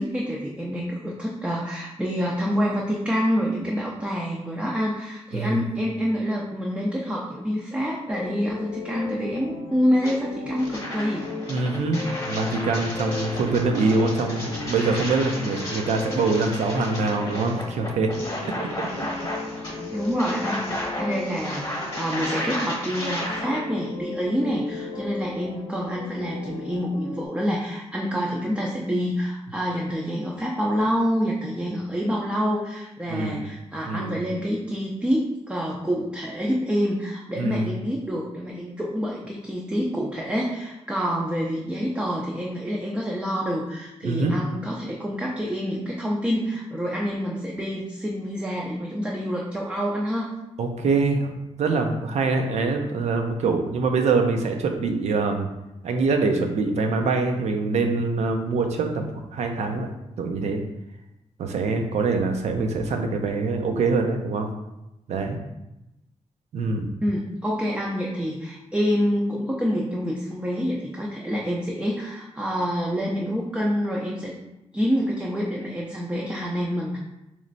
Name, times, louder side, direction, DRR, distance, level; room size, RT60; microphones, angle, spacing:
voice 1, 0.0-11.3 19.3-50.4 67.0-74.3 74.7-77.0, equal, 10° right, -3 dB, 0.4 m, -27 dB
voice 2, 5.3-5.7 11.5-18.1 18.4-19.1 19.4-19.5 33.1-33.4 33.8-34.1 37.4-37.7 44.0-44.4 50.6-51.3 51.6-55.5 55.8-59.9 60.2-60.6 61.4-64.5 65.1-65.4 66.5-66.9, right 3 dB, 80° right, 4 dB, 0.5 m, -24 dB
sound 1, 8.1-27.3, left 3 dB, 55° left, 0.7 m, -36 dB
sound 2, 10.0-10.1 10.6-23.6, left 1 dB, 30° left, 1.0 m, -33 dB
3.1 x 3.1 x 3.9 m, 0.92 s
wide cardioid pair, 175°, 11 cm